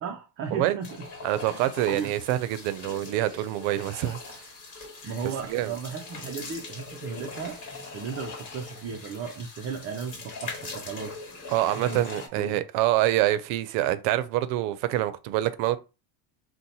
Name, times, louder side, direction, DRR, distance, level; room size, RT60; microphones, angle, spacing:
voice 1, 0.0-1.0 1.5-1.6 1.9-2.1 3.3-3.5 5.0-11.5 11.8-12.0 12.4-12.6, right 6 dB, 30° right, 0.4 m, -35 dB
sound 1, 0.8-12.3, left 3 dB, 40° left, 1.2 m, -41 dB
voice 2, 1.2-4.4 5.5-5.7 11.5-15.8, right 14 dB, 85° right, 0.6 m, -26 dB
2.8 x 2.1 x 4.0 m
cardioid pair, 120°, 46 cm